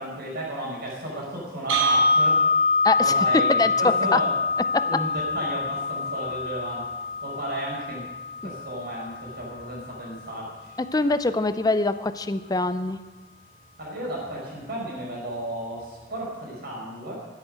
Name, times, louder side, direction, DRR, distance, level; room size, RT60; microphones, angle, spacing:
voice 1, 0.0-2.4 3.0-4.3 4.8-6.9 7.2-8.0 8.4-10.8 13.8-17.2, right 1 dB, 50° right, -3 dB, 5.6 m, -33 dB
sound 1, 1.7-9.7, left 3 dB, 80° right, 4.3 m, -25 dB
voice 2, 2.8-3.2 3.5-4.2 4.7-4.8 10.8-13.0, left 2 dB, 20° left, 12 dB, 0.4 m, -24 dB
12.0 x 11.0 x 6.4 m, 1.2 s
head